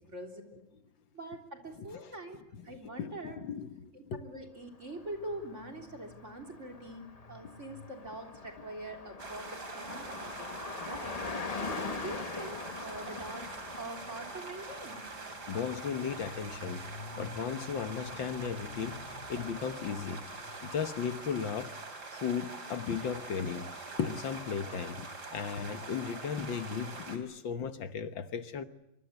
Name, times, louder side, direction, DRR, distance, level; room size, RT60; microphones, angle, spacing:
voice 1, 0.1-0.6 1.1-2.4 2.6-3.4 3.9-11.2 11.6-13.5 13.8-15.0, right 1 dB, 35° right, 3.9 m, -44 dB
voice 2, 1.8-2.1 2.5-2.6 3.0-4.2 15.5-16.8 17.2-19.0 19.3-20.2 20.6-21.8 22.1-23.7 24.0-28.6, left 7 dB, 65° left, 1.9 m, -36 dB
Car passing by, 4.8-20.9, left 4 dB, 35° left, 0.6 m, -44 dB
sound 1, 9.2-27.2, right 3 dB, 50° right, 3.9 m, -44 dB
25.0 x 24.0 x 8.2 m
omnidirectional pair, 2.3 m